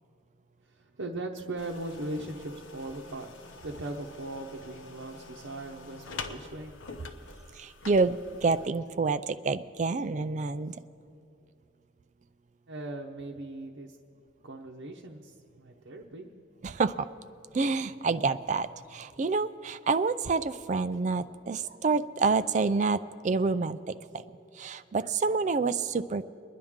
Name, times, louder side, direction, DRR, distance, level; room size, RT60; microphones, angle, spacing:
voice 1, 0.6-3.3 3.6-6.8 12.7-14.0 14.4-16.3, right 2 dB, 90° right, -1 dB, 0.9 m, -39 dB
sound 1, 1.6-8.7, left 3 dB, 90° left, 0.9 m, -46 dB
voice 2, 7.6-8.2 8.4-10.7 16.6-17.1 17.5-23.0 23.2-23.8 24.6-26.2, right 4 dB, 40° right, 13 dB, 0.3 m, -28 dB
24.5 x 10.0 x 3.6 m, 2.6 s
head